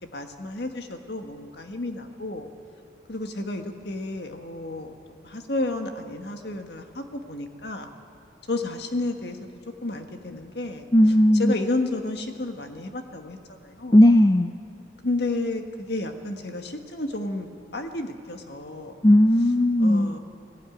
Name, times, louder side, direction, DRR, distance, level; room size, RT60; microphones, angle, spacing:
voice 1, 0.0-2.5 3.1-4.9 5.2-7.9 8.5-9.5 9.8-10.9 11.4-13.9 15.0-19.0 19.8-20.2, left 2 dB, 65° left, 5 dB, 1.6 m, -31 dB
voice 2, 10.9-11.5 13.9-14.5 19.0-20.1, left 1 dB, 20° left, 9 dB, 0.4 m, -16 dB
18.5 x 17.5 x 9.2 m, 2.4 s
head